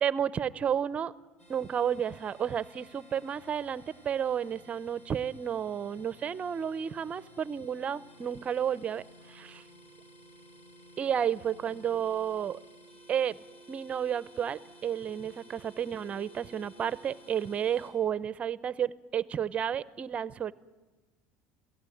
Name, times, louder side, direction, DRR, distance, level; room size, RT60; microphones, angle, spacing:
voice 1, 0.0-1.1 1.5-9.6 11.0-12.6 13.1-13.4 13.7-20.5, right 8 dB, 25° right, 17 dB, 0.7 m, -31 dB
sound 1, 1.4-17.9, equal, 25° left, 6.6 m, -55 dB
27.0 x 17.5 x 9.2 m, 1.3 s
cardioid pair, 165°, 5 cm